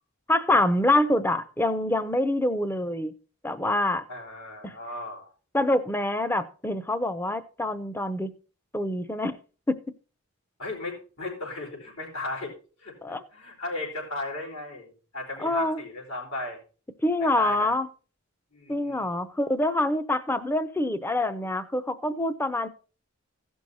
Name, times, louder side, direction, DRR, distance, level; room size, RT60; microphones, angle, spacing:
voice 1, 0.3-3.1 3.4-4.0 4.6-4.7 5.5-8.3 8.7-9.4 9.7-9.8 13.0-13.2 15.4-15.8 17.0-17.9 18.7-22.7, left 1 dB, 10° left, 0.6 m, -25 dB
voice 2, 4.1-5.3 10.6-12.5 12.8-16.6 17.2-17.7 18.5-19.2, left 2 dB, 85° left, 4.5 m, -36 dB
15.5 x 6.3 x 4.1 m
head